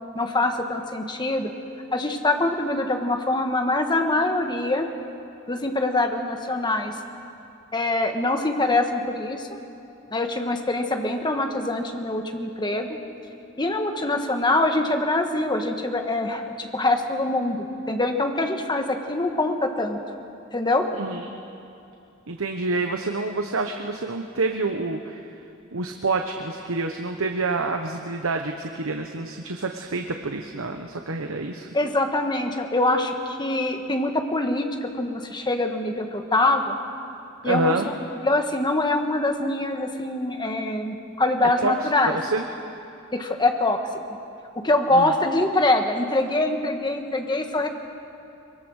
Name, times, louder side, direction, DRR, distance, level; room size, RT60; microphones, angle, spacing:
voice 1, 0.1-1.5 1.9-4.9 5.5-6.9 7.7-9.5 10.1-13.0 13.6-20.0 20.5-20.9 31.7-36.7 37.4-42.2 43.1-43.8 44.6-47.7, left 2 dB, 20° left, 4 dB, 1.5 m, -24 dB
voice 2, 20.9-21.3 22.3-25.3 25.7-31.7 37.4-37.9 41.6-42.4 44.9-45.1, right 3 dB, 80° right, 5 dB, 1.1 m, -28 dB
23.0 x 23.0 x 6.4 m, 2.6 s
head